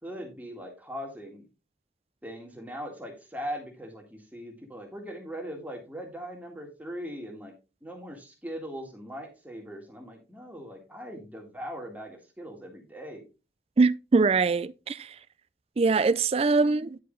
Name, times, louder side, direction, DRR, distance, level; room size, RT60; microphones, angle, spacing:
voice 1, 0.0-1.4 2.2-7.5 7.8-13.2, equal, 10° right, 1.7 m, -40 dB
voice 2, 13.8-15.0 15.8-17.0, right 4 dB, 35° right, 0.4 m, -22 dB
10.0 x 4.8 x 3.8 m
head